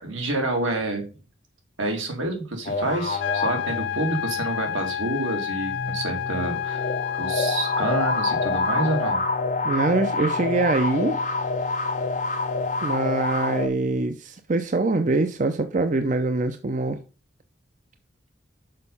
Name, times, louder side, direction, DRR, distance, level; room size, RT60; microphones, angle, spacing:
voice 1, 0.0-1.1 1.8-6.9 7.2-9.2, right 2 dB, 85° right, 2.5 m, -28 dB
sound 1, 2.6-4.3 5.6-13.7, left 3 dB, 40° left, 0.7 m, -27 dB
sound 2, 3.2-9.2, left 10 dB, 65° left, 0.4 m, -30 dB
voice 2, 9.6-11.2 12.8-17.0, right 3 dB, 40° right, 0.5 m, -24 dB
6.5 x 5.3 x 5.4 m
head